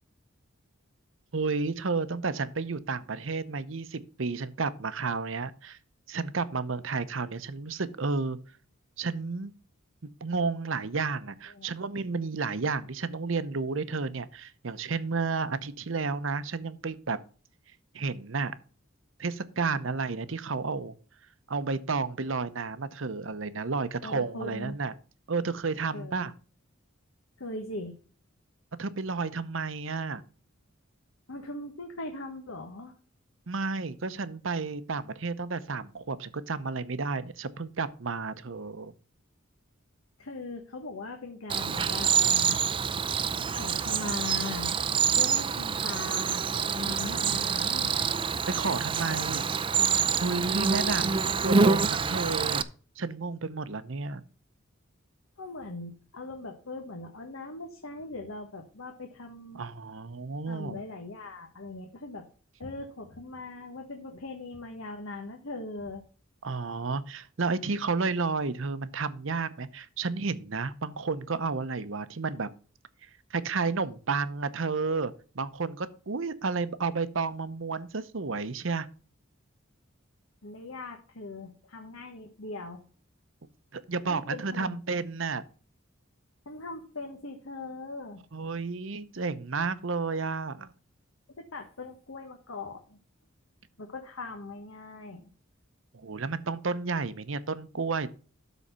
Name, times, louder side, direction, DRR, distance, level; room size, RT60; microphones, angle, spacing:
voice 1, 1.3-5.8 6.1-8.4 9.0-9.5 10.2-17.2 17.9-18.5 19.2-20.9 21.5-24.9 25.3-26.3 28.8-30.2 33.5-38.9 48.5-49.5 50.2-52.6 53.0-54.2 59.5-60.8 66.4-72.5 73.3-78.9 83.7-85.4 88.3-90.7 95.9-98.1, right 4 dB, 70° right, 14 dB, 0.8 m, -31 dB
voice 2, 24.0-24.8 25.9-26.3 27.4-27.9 31.3-32.9 40.2-42.6 43.5-44.7 45.1-47.9 50.8-51.1 55.4-59.6 60.5-62.3 62.6-66.0 80.4-82.8 84.1-84.8 86.4-88.2 91.5-93.0 93.8-95.3, left 2 dB, 90° left, 3 dB, 1.3 m, -40 dB
Cricket, 41.5-52.6, right 6 dB, 25° right, 0.4 m, -26 dB
12.5 x 4.2 x 5.5 m, 0.40 s
head